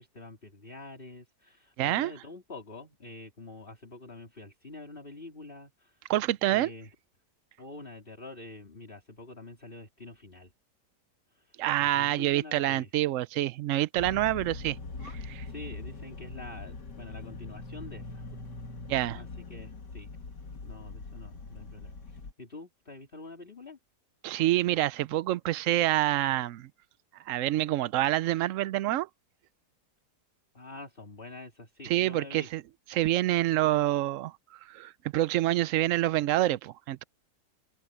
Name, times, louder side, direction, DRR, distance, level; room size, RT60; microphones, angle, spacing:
voice 1, 0.0-6.0 6.4-6.9 7.6-10.5 11.3-12.9 15.5-18.2 19.1-20.1 20.6-23.8 30.5-32.5, left 2 dB, 30° left, 3.5 m, -46 dB
voice 2, 1.8-2.1 6.1-6.7 11.6-14.8 15.0-15.4 18.9-19.2 24.2-26.7 27.3-29.1 31.8-32.6 32.9-37.0, right 15 dB, 70° right, 0.7 m, -27 dB
sound 1, 14.0-22.3, left 3 dB, 80° left, 2.7 m, -42 dB
open air
omnidirectional pair, 1.8 m